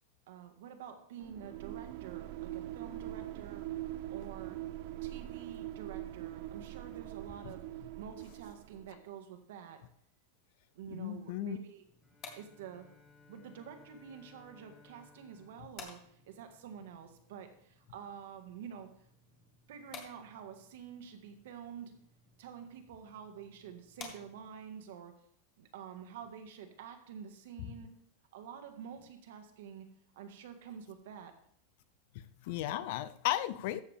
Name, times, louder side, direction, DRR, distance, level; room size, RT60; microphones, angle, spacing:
voice 1, 0.3-4.6 5.0-9.8 10.7-11.8 12.3-12.9 13.3-18.9 19.7-21.9 22.4-25.1 25.6-27.9 28.3-29.9 30.1-31.3, right 8 dB, 75° right, 6 dB, 1.7 m, -48 dB
sound 1, 1.2-9.0, right 14 dB, 55° right, 0.4 m, -43 dB
voice 2, 10.9-11.6 27.6-27.7 32.4-33.8, left 13 dB, 55° left, 15 dB, 0.6 m, -35 dB
sound 2, 11.8-24.7, left 4 dB, 30° left, 1.7 m, -56 dB
Bowed string instrument, 12.0-16.8, left 4 dB, 10° left, 1.7 m, -62 dB
14.0 x 7.3 x 3.5 m, 0.65 s
supercardioid pair, 160°, 0 cm